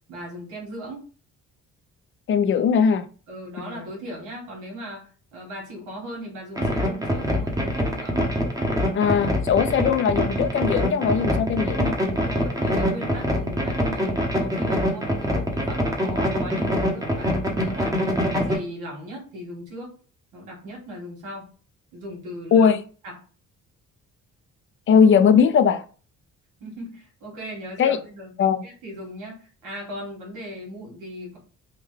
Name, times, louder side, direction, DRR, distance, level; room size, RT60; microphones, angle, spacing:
voice 1, 0.1-1.0 3.3-8.3 12.0-19.9 20.3-21.5 21.9-22.7 23.0-23.2 26.6-28.3 28.6-31.4, equal, 85° right, 1.6 m, -38 dB
voice 2, 2.3-3.0 3.6-3.9 8.9-12.0 22.5-22.8 24.9-25.8 27.8-28.0 28.4-28.6, left 7 dB, 40° left, 0.4 m, -19 dB
sound 1, 6.6-18.6, equal, 10° right, 0.8 m, -24 dB
3.6 x 2.2 x 3.2 m
cardioid pair, 90°, 30 cm